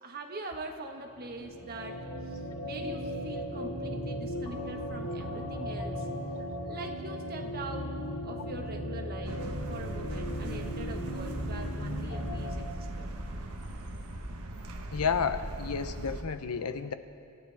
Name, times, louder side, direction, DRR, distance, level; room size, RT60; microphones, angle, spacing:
voice 1, 0.0-6.1 6.4-7.9 8.2-9.4 9.7-13.1, right 2 dB, 45° right, 2 dB, 1.5 m, -43 dB
sound 1, 1.1-12.6, equal, 70° left, 2.5 m, -37 dB
sound 2, 9.2-16.2, right 1 dB, 80° right, 1.3 m, -39 dB
voice 2, 14.9-16.9, left 6 dB, 90° left, 10 dB, 0.8 m, -31 dB
27.0 x 15.0 x 3.5 m, 2.6 s
head